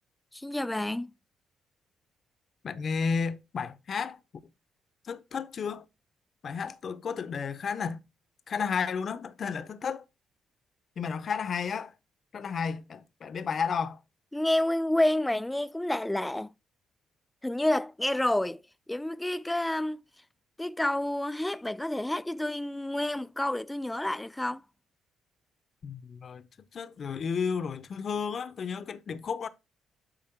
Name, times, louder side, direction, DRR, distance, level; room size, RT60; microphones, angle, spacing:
voice 1, 0.3-1.1 14.3-16.5 17.4-18.6 18.9-20.0 20.6-24.6, left 1 dB, 10° left, 0.3 m, -29 dB
voice 2, 2.6-4.2 5.0-5.8 6.4-8.0 8.5-10.0 11.0-11.9 12.3-14.0 25.8-26.5 26.7-29.5, left 6 dB, 50° left, 0.7 m, -32 dB
7.7 x 4.8 x 4.5 m
cardioid pair, 90°, 0 cm